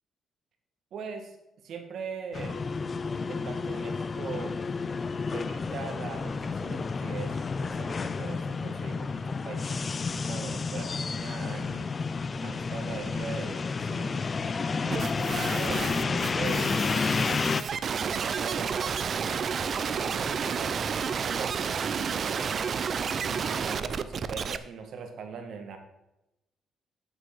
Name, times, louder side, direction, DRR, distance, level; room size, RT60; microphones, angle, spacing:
voice 1, 0.9-1.4 1.6-2.6 3.3-4.6 5.3-7.4 7.6-9.8 10.3-11.9 12.4-14.2 14.8-19.3 19.7-22.6 23.2-25.8, right 5 dB, 60° right, 5 dB, 1.8 m, -40 dB
sound 1, 2.3-17.6, left 4 dB, 30° left, 0.4 m, -31 dB
sound 2, 14.9-24.6, right 6 dB, 45° right, 0.5 m, -31 dB
8.2 x 7.9 x 6.1 m, 0.91 s
cardioid pair, 130°, 0 cm